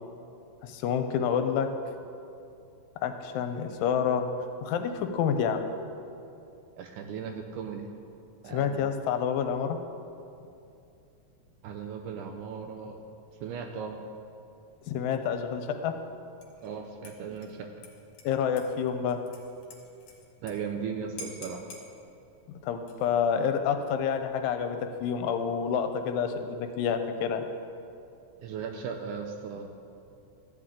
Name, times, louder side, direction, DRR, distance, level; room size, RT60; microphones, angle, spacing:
voice 1, 0.6-1.7 3.0-4.3 4.6-5.7 8.5-9.8 14.9-16.0 18.2-19.2 22.6-27.5, left 7 dB, 85° left, 7 dB, 2.3 m, -28 dB
voice 2, 6.8-7.9 8.4-8.8 11.6-13.0 13.4-14.0 16.6-17.7 20.4-21.6 28.4-29.7, right 6 dB, 80° right, 4 dB, 1.9 m, -37 dB
Dishes pots and pans / Liquid, 16.4-16.7 17.0-20.5 20.8-20.9 21.2-21.9 22.7-23.2, left 2 dB, 65° left, 2.5 m, -48 dB
13.5 x 9.3 x 3.7 m, 2.6 s
omnidirectional pair, 4.1 m